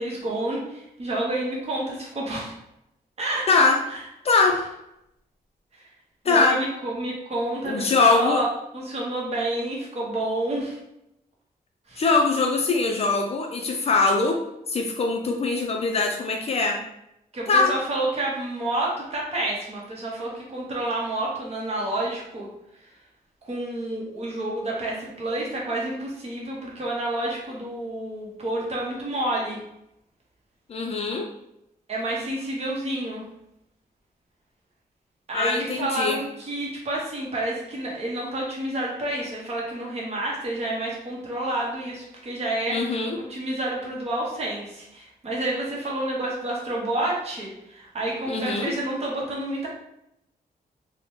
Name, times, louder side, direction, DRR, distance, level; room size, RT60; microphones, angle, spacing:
voice 1, 0.0-2.5 3.2-3.5 5.7-5.8 6.3-8.4 8.7-10.8 11.9-12.0 17.3-22.5 23.5-29.6 31.9-33.2 35.3-49.7, right 1 dB, 40° right, -3 dB, 0.8 m, -29 dB
voice 2, 3.5-3.8 4.2-4.6 6.2-6.6 7.6-8.4 12.0-14.4 14.7-16.8 17.5-17.7 30.7-31.3 35.3-36.2 42.7-43.2 48.3-48.7, left 4 dB, 40° left, 2 dB, 0.4 m, -22 dB
2.8 x 2.1 x 3.1 m, 0.83 s
wide cardioid pair, 155°, 16 cm